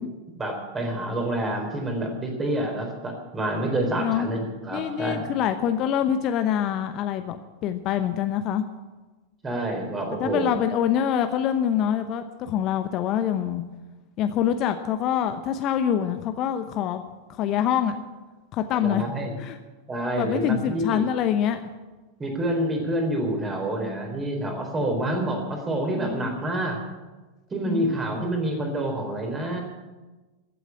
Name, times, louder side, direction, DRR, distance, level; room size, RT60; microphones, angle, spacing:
voice 1, 0.3-5.3 9.4-10.5 18.7-19.3 19.9-21.0 22.2-26.8 27.5-29.6, right 1 dB, 20° right, 2 dB, 4.1 m, -28 dB
voice 2, 4.0-4.3 4.7-8.6 10.2-13.6 14.2-17.0 17.3-18.0 18.5-19.0 19.4-19.6 20.2-21.6 26.0-26.4 27.6-28.2, left 9 dB, 35° left, 9 dB, 0.8 m, -25 dB
15.0 x 8.3 x 9.8 m, 1.2 s
figure-of-eight pair, 90°, 0 cm